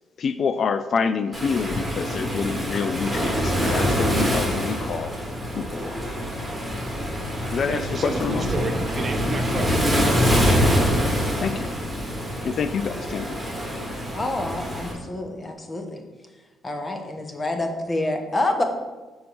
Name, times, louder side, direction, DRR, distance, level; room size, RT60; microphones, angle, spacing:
voice 1, 0.2-5.1 5.6-6.0 7.5-8.5 11.4-11.7 12.4-13.4, left 6 dB, 55° left, 11 dB, 0.3 m, -27 dB
Waves surf, 1.3-14.9, equal, ahead, 2.1 m, -25 dB
voice 2, 7.7-10.7, right 2 dB, 40° right, 3 dB, 1.0 m, -31 dB
voice 3, 14.1-16.0 16.6-18.6, left 2 dB, 30° left, 5 dB, 1.0 m, -27 dB
5.5 x 4.3 x 6.1 m, 1.3 s
cardioid pair, 90°, 0 cm